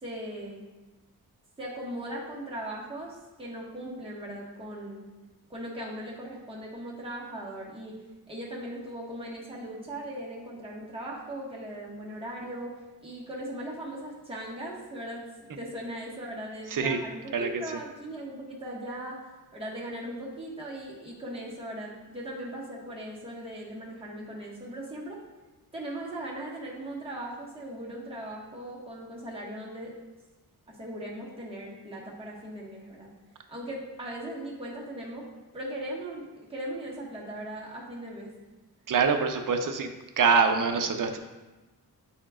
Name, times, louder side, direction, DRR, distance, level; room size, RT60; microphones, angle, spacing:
voice 1, 0.0-0.7 1.6-5.1 5.5-8.0 8.3-12.8 13.0-19.2 19.5-25.2 25.7-29.9 30.7-33.1 33.5-35.3 35.5-38.3, right 1 dB, 15° right, -5 dB, 1.4 m, -39 dB
voice 2, 38.9-39.9 40.2-41.2, right 5 dB, 60° right, 6 dB, 0.6 m, -24 dB
8.9 x 4.3 x 2.4 m, 1.1 s
wide cardioid pair, 105°, 37 cm